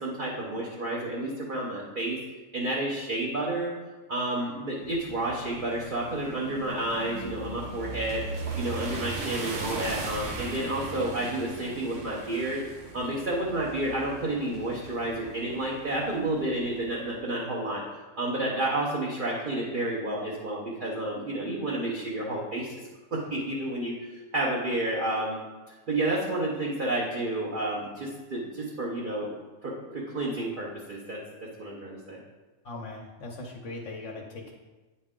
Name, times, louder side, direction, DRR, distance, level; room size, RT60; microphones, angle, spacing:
voice 1, 0.0-2.2 2.5-3.7 4.1-8.2 8.6-12.6 12.9-22.7 23.1-25.4 25.9-29.3 29.6-31.2 31.6-32.2, right 1 dB, 45° right, -4 dB, 1.0 m, -30 dB
sound 1, 4.8-17.0, right 3 dB, 75° right, 1.2 m, -39 dB
voice 2, 32.6-34.5, left 2 dB, 70° left, -1 dB, 1.1 m, -39 dB
8.9 x 4.3 x 3.7 m, 1.2 s
omnidirectional pair, 1.3 m